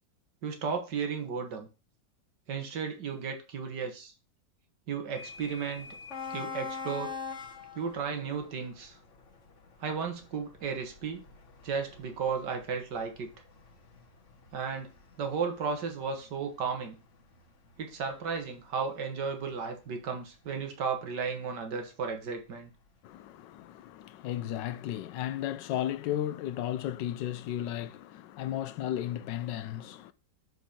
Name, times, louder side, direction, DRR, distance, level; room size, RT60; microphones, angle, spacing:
voice 1, 0.4-1.7 2.5-4.1 4.9-5.9 6.3-7.1 7.7-9.0 9.8-11.2 11.6-13.3 14.5-14.9 15.2-17.0 17.8-22.7, right 6 dB, 70° right, 2.1 m, -34 dB
sound 1, 5.2-22.9, left 5 dB, 45° left, 1.7 m, -46 dB
voice 2, 23.0-30.1, left 12 dB, 80° left, 1.3 m, -34 dB
7.9 x 4.6 x 5.7 m
omnidirectional pair, 1.9 m